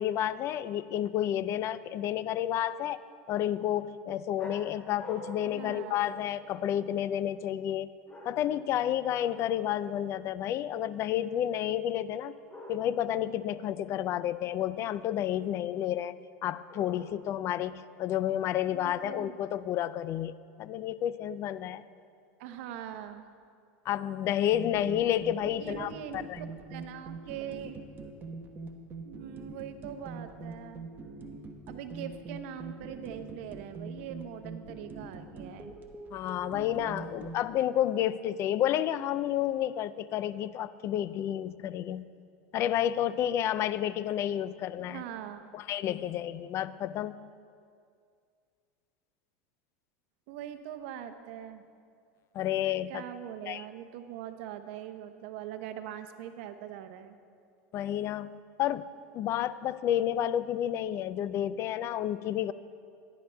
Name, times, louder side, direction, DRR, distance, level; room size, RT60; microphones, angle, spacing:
voice 1, 0.0-3.0 3.3-7.9 8.2-12.3 12.7-16.1 16.4-20.3 20.6-21.8 23.9-26.4 36.1-42.1 42.5-45.0 45.5-47.3 52.3-53.0 53.4-53.6 57.7-58.9 59.1-62.5, left 11 dB, 40° left, 16 dB, 0.3 m, -30 dB
sound 1, 4.4-6.9 8.0-8.7 9.1-9.5 12.5-13.2 16.7-17.4, left 1 dB, 25° left, 2.1 m, -46 dB
voice 2, 5.5-5.9 18.6-19.4 22.4-23.3 25.6-26.3 26.7-27.8 29.0-30.9 31.7-35.8 44.8-45.5 50.3-51.7 52.9-57.2, right 10 dB, 70° right, 8 dB, 0.8 m, -42 dB
sound 2, 24.5-37.4, right 3 dB, 30° right, 0.9 m, -43 dB
16.5 x 10.5 x 2.2 m, 2.3 s
supercardioid pair, 120°, 7 cm